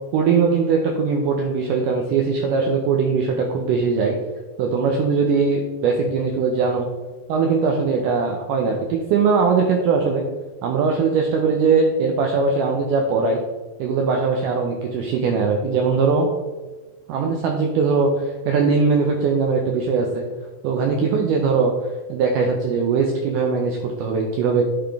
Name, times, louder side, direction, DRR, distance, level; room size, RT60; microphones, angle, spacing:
voice 1, 0.1-4.2 4.6-6.9 7.3-10.2 10.6-13.4 13.8-16.3 17.1-20.2 20.6-21.7 22.1-24.6, right 5 dB, 90° right, 2 dB, 1.8 m, -20 dB
8.6 x 3.8 x 3.4 m, 1.3 s
omnidirectional pair, 4.3 m